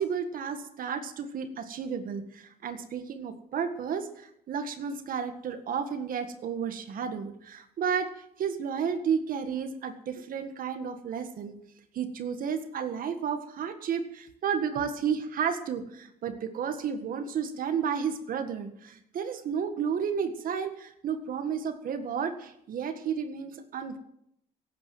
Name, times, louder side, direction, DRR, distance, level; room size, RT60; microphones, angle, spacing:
voice 1, 0.0-8.1 8.4-11.5 11.9-24.0, right 7 dB, 55° right, 9 dB, 1.7 m, -32 dB
17.0 x 9.1 x 7.7 m, 0.75 s
cardioid pair, 110°, 17 cm